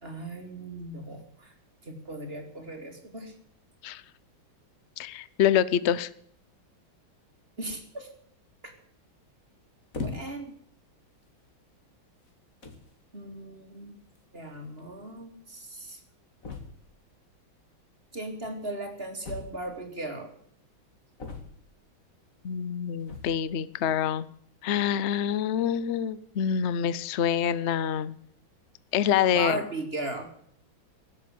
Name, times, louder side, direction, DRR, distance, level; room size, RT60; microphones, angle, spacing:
voice 1, 0.0-1.5 1.8-3.3 7.6-8.1 8.6-8.7 10.0-10.5 13.1-14.0 14.3-16.0 18.1-20.3 29.3-30.3, right 2 dB, 30° right, 4 dB, 2.8 m, -37 dB
voice 2, 5.0-6.1 22.4-24.3 24.6-28.1 28.9-29.6, left 9 dB, 75° left, 17 dB, 0.6 m, -26 dB
sound 1, 9.9-10.5 11.3-11.5 12.3-12.4 12.6-12.9 14.2-14.3 14.5-14.6 14.8-14.9 16.4-17.0 19.2-19.9 21.2-21.8 23.0-23.5, left 3 dB, 40° left, 2.5 m, -39 dB
17.0 x 8.3 x 9.3 m, 0.64 s
omnidirectional pair, 2.2 m